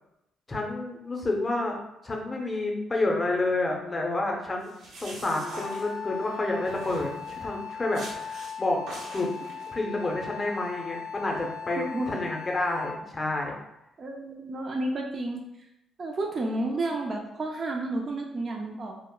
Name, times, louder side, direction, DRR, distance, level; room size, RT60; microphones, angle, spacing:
voice 1, 0.5-1.8 2.0-4.7 5.0-9.3 9.7-13.5, left 2 dB, 25° left, 0 dB, 0.6 m, -29 dB
sound 1, 4.6-6.3 6.7-7.5 7.9-8.5 8.9-9.7, right 1 dB, 85° right, 0.7 m, -44 dB
Wind instrument woodwind instrument, 5.5-13.1, left 6 dB, 75° left, 0.4 m, -39 dB
voice 2, 11.8-12.1 14.0-15.4 16.0-19.0, right 2 dB, 40° right, 1 dB, 0.4 m, -31 dB
2.0 x 2.0 x 3.6 m, 0.86 s
cardioid pair, 90°, 0 cm